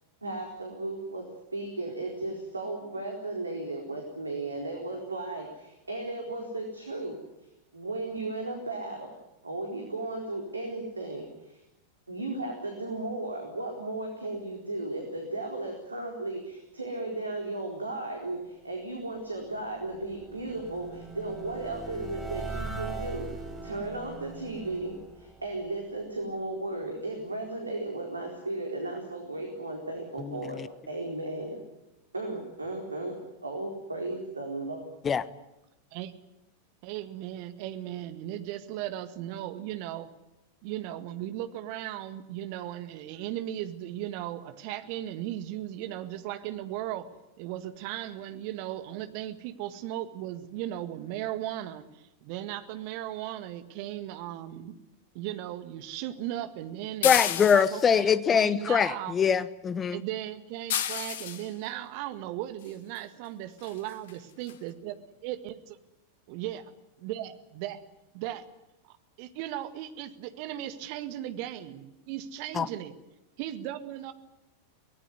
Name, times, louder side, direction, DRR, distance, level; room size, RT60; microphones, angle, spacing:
voice 1, 0.2-7.2 7.7-9.1 9.4-11.6 12.1-31.6 32.1-34.8, right 2 dB, 80° right, 2 dB, 4.2 m, -35 dB
sound 1, 19.2-26.3, right 3 dB, ahead, 5.9 m, -41 dB
voice 2, 36.8-40.1 40.6-47.1 47.4-54.8 55.1-57.1 57.5-59.2 59.9-64.9 65.2-65.5 66.3-66.6 67.0-67.8 68.1-68.5 68.8-72.9 73.4-74.1, right 13 dB, 45° right, 10 dB, 1.8 m, -37 dB
sound 2, 57.0-58.0 60.7-61.5 63.0-63.1 63.6-63.8 64.1-64.2 64.5-64.6, left 10 dB, 55° left, 1.9 m, -30 dB
voice 3, 57.0-60.0 72.6-72.7, left 7 dB, 20° left, 17 dB, 1.1 m, -23 dB
24.0 x 18.5 x 9.7 m, 0.93 s
figure-of-eight pair, 90°, 0 cm